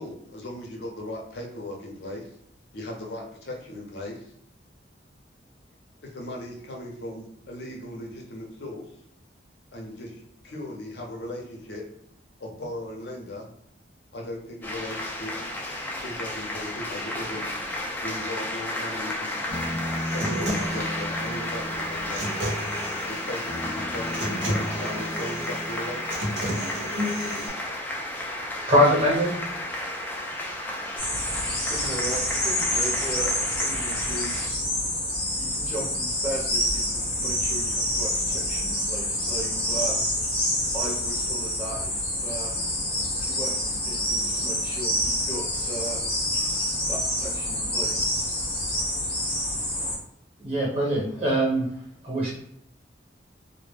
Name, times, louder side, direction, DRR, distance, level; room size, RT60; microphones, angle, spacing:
voice 1, 0.0-2.2 2.7-4.2 6.1-8.8 9.7-10.1 10.4-11.8 12.4-13.4 14.1-15.5 16.0-17.5 18.0-19.4 20.1-22.3 23.1-26.3 26.8-27.5, left 1 dB, 65° left, -1 dB, 0.6 m, -37 dB
sound 1, 14.6-34.5, left 1 dB, 10° left, 0.3 m, -33 dB
Human voice / Acoustic guitar, 19.5-27.5, equal, 75° right, 0.8 m, -32 dB
voice 2, 28.7-29.4 50.4-51.7 52.0-52.3, equal, 30° right, -5 dB, 1.1 m, -22 dB
sound 2, 31.0-50.0, left 1 dB, 30° left, 0.7 m, -27 dB
voice 3, 31.6-34.6 35.4-40.0 40.7-42.6 43.2-46.0 46.9-48.1, right 1 dB, 10° right, -6 dB, 0.8 m, -37 dB
2.1 x 2.1 x 3.1 m, 0.71 s
head